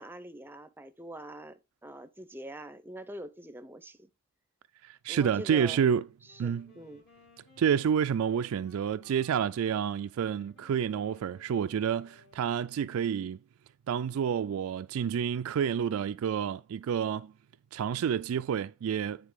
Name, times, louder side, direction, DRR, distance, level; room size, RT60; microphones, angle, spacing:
voice 1, 0.0-4.1 5.1-5.9 6.2-7.0, right 1 dB, 10° right, 0.6 m, -44 dB
voice 2, 4.8-6.0 6.4-6.7 7.6-13.4 13.9-17.3 17.7-19.2, right 8 dB, 75° right, 0.3 m, -29 dB
Wind instrument woodwind instrument, 6.2-13.0, left 3 dB, 55° left, 3.0 m, -61 dB
9.3 x 3.8 x 4.9 m
head